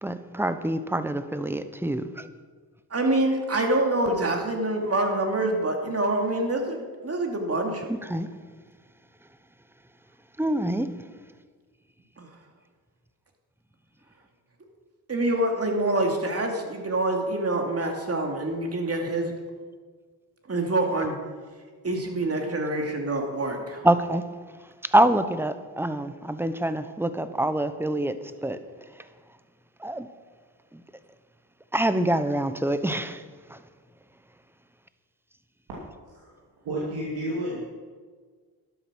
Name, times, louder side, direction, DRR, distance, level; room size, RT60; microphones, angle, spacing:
voice 1, 0.0-2.3 7.9-8.3 10.4-10.9 23.8-24.2 24.9-28.6 29.8-30.1 31.7-33.2 33.5-33.6, right 1 dB, 5° right, 11 dB, 0.9 m, -25 dB
voice 2, 2.9-7.8 12.2-12.3 15.1-19.3 20.5-21.2 21.8-23.9, right 2 dB, 40° right, 2 dB, 2.5 m, -26 dB
voice 3, 36.6-37.6, right 1 dB, 90° right, -5 dB, 2.7 m, -31 dB
12.0 x 8.7 x 6.2 m, 1.5 s
cardioid pair, 70°, 37 cm